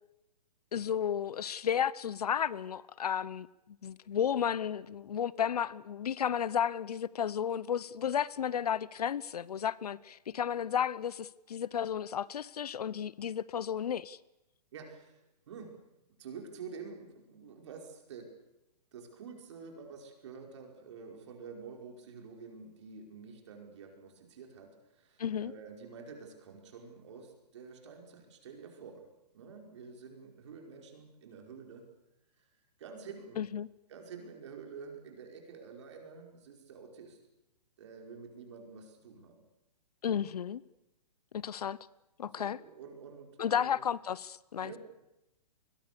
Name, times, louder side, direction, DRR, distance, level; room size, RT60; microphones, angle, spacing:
voice 1, 0.7-3.5 3.8-14.2 25.2-25.5 33.4-33.7 40.0-40.6 41.3-41.8 42.2-42.6 43.4-44.7, left 8 dB, 65° left, 21 dB, 0.8 m, -33 dB
voice 2, 14.7-15.7 16.2-18.3 18.9-29.1 29.3-31.9 32.4-32.5 32.8-33.5 33.9-37.2 37.8-39.4 42.2-43.8 44.6-44.8, right 5 dB, 45° right, 2 dB, 5.3 m, -48 dB
25.5 x 21.5 x 6.9 m, 0.91 s
hypercardioid pair, 175°, 21 cm